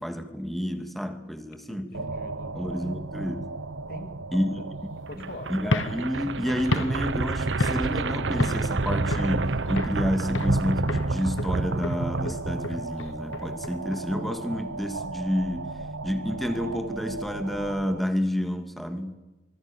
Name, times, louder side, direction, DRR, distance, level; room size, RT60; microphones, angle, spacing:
voice 1, 0.0-2.0 2.5-3.5 4.3-4.5 5.2-19.2, equal, ahead, 2.3 m, -30 dB
voice 2, 1.7-2.6 3.9-4.6 5.1-5.5, left 1 dB, 50° left, 2.8 m, -43 dB
sound 1, 1.9-18.0, right 3 dB, 90° right, 1.0 m, -38 dB
sound 2, 5.1-13.1, right 3 dB, 65° right, 0.9 m, -29 dB
sound 3, 5.6-8.1 8.4-8.7 9.1-10.0 10.3-10.6 10.9-14.0, left 2 dB, 75° left, 1.2 m, -32 dB
25.0 x 24.0 x 7.2 m
head